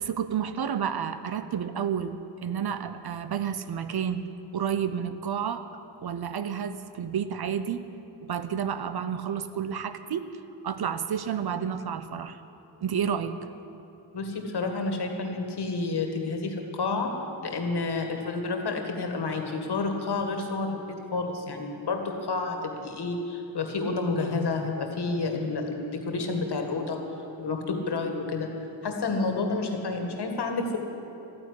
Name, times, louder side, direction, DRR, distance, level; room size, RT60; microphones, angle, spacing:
voice 1, 0.0-4.2 4.5-5.6 6.0-7.8 8.2-10.3 10.6-12.4 12.8-13.4, right 8 dB, 55° right, 11 dB, 0.7 m, -30 dB
voice 2, 14.1-17.1 17.4-27.0 27.4-28.5 28.8-30.8, left 3 dB, 60° left, 4 dB, 1.9 m, -30 dB
14.0 x 9.8 x 9.8 m, 2.8 s
wide cardioid pair, 175°, 45 cm